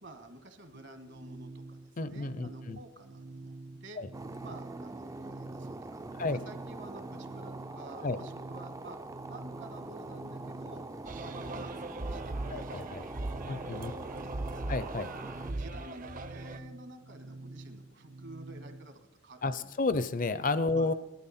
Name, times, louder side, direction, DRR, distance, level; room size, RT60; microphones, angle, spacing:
voice 1, 0.0-4.0 4.4-9.0 9.3-10.8 11.1-12.8 13.4-14.8 15.3-19.7 20.7-20.9, right 2 dB, 60° right, 8 dB, 1.6 m, -51 dB
sound 1, 0.7-18.9, right 2 dB, 80° right, 0.8 m, -48 dB
voice 2, 2.0-2.8 4.0-4.1 6.1-6.4 8.0-8.2 12.5-13.0 13.4-13.9 14.7-15.1 19.4-20.9, left 3 dB, 40° left, 14 dB, 0.6 m, -31 dB
sound 2, 4.1-15.5, right 2 dB, 15° right, 0.4 m, -44 dB
sound 3, 11.0-16.6, right 2 dB, 40° right, 0.7 m, -39 dB
18.0 x 12.5 x 4.3 m, 1.1 s
head